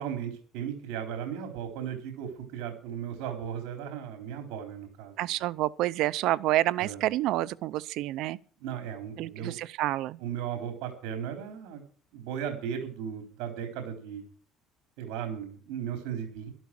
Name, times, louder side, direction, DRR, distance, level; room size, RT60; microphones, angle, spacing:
voice 1, 0.0-5.3 6.8-7.0 8.6-9.6 10.2-11.8 12.1-14.2 15.0-16.5, right 8 dB, 80° right, 4.0 m, -36 dB
voice 2, 5.2-8.4 9.2-10.2, right 15 dB, 65° right, 0.6 m, -28 dB
13.0 x 12.5 x 6.0 m
cardioid pair, 145°, 0 cm